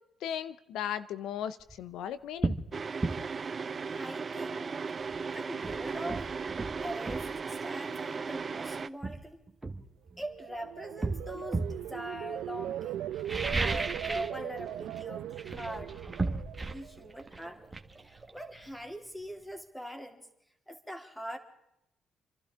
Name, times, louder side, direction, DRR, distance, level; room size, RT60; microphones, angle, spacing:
voice 1, 0.2-2.6, left 10 dB, 85° left, 14 dB, 0.7 m, -36 dB
sound 1, 1.6-1.8 2.4-2.7 3.0-3.2 5.1-5.2 5.6-7.3 8.4-8.5 9.0-10.4 11.0-11.8 13.1-14.4 14.7-15.0 15.3-18.9 19.2-19.3, right 3 dB, 20° right, 1.6 m, -34 dB
sound 2, 2.7-8.9, right 5 dB, 40° right, 0.6 m, -36 dB
voice 2, 3.9-4.8 5.2-6.5 6.8-9.4 10.2-16.0 16.7-17.6 18.0-20.3 20.7-21.4, right 1 dB, 10° left, 5 dB, 2.7 m, -42 dB
sound 3, 10.2-17.3 17.7-18.1, right 12 dB, 85° right, 0.6 m, -39 dB
28.5 x 12.0 x 3.7 m, 0.81 s
cardioid pair, 90°, 0 cm